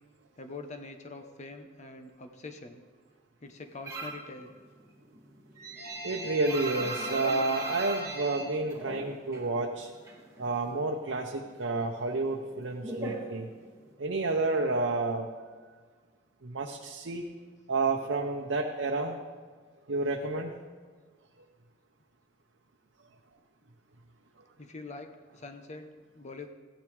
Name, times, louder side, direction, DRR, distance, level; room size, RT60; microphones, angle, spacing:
voice 1, 0.4-2.8 3.4-4.5 24.6-25.9 26.1-26.5, left 3 dB, 40° left, 6 dB, 0.9 m, -44 dB
sound 1, 3.9-4.3 4.6-9.5 9.8-10.8 11.1-13.9, right 2 dB, 15° right, 2.5 m, -38 dB
voice 2, 6.0-9.9 10.4-13.5 14.0-15.3 16.4-17.3 17.7-19.2 19.9-20.5, right 3 dB, 80° right, 1 dB, 0.8 m, -30 dB
15.5 x 10.5 x 3.4 m, 1.5 s
head